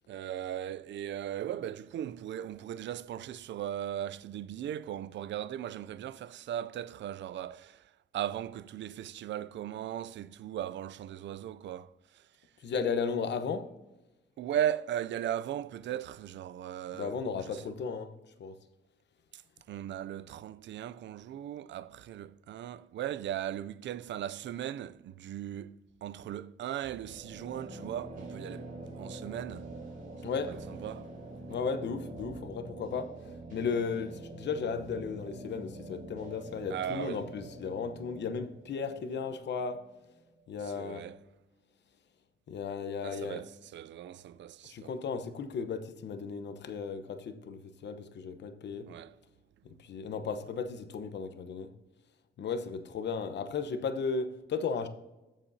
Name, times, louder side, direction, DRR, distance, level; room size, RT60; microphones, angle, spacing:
voice 1, 0.1-12.3 14.4-17.6 19.3-19.4 19.7-29.7 30.2-31.1 36.7-37.3 40.6-41.2 43.0-44.9 48.9-49.2, right 11 dB, 70° right, 0.4 m, -38 dB
voice 2, 12.6-13.7 16.9-18.1 18.4-18.6 30.2-30.6 31.5-39.8 40.5-41.1 42.5-43.4 44.6-48.9 49.8-51.7 52.4-54.9, left 5 dB, 65° left, 0.9 m, -35 dB
sound 1, 26.8-40.5, right 2 dB, 45° right, 3.9 m, -46 dB
21.0 x 7.2 x 2.8 m
cardioid pair, 135°, 20 cm